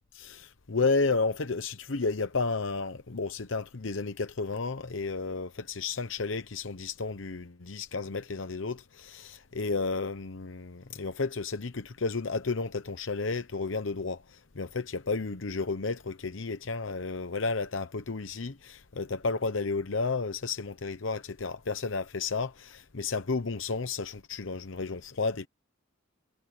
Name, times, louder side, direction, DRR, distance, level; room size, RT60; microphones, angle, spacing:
voice 1, 0.1-25.5, left 4 dB, 70° left, 0.9 m, -32 dB
head